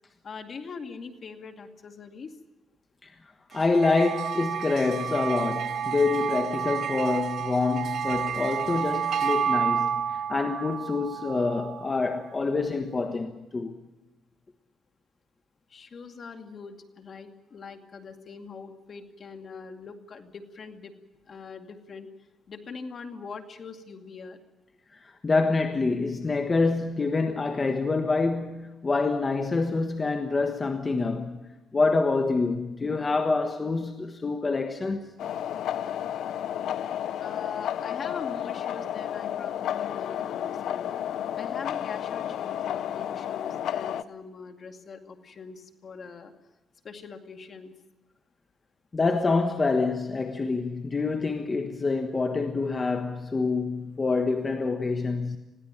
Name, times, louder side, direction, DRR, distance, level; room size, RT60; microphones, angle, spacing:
voice 1, 0.2-2.4 15.7-20.9 21.3-24.4 37.2-40.9 41.4-46.3 46.8-47.7, left 5 dB, 50° left, 2.3 m, -42 dB
voice 2, 3.5-13.8 24.9-31.4 31.7-35.1 48.9-55.4, left 3 dB, 30° left, 1.3 m, -26 dB
sound 1, 3.5-12.2, right 8 dB, 65° right, 1.0 m, -30 dB
sound 2, 35.2-44.0, left 10 dB, 75° left, 0.8 m, -32 dB
21.5 x 16.0 x 9.1 m
cardioid pair, 90°, 0 cm